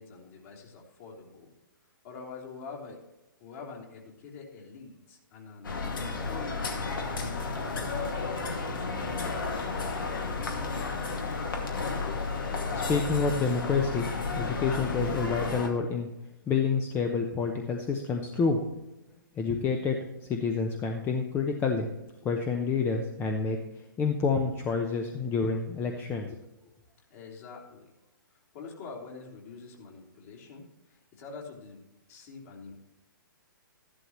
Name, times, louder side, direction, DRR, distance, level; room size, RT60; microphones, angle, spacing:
voice 1, 0.0-1.5 2.0-3.0 3.4-5.8 6.3-8.1 8.7-10.0 27.1-28.0 28.3-32.7, left 4 dB, 45° left, -2 dB, 3.5 m, -46 dB
sound 1, 5.6-15.7, left 4 dB, 70° left, 2.3 m, -32 dB
voice 2, 12.4-14.1 14.4-16.1 16.5-18.6 19.3-21.9 22.2-26.3, left 5 dB, 15° left, 4 dB, 0.9 m, -28 dB
13.5 x 11.5 x 3.1 m, 0.96 s
hypercardioid pair, 135°, 12 cm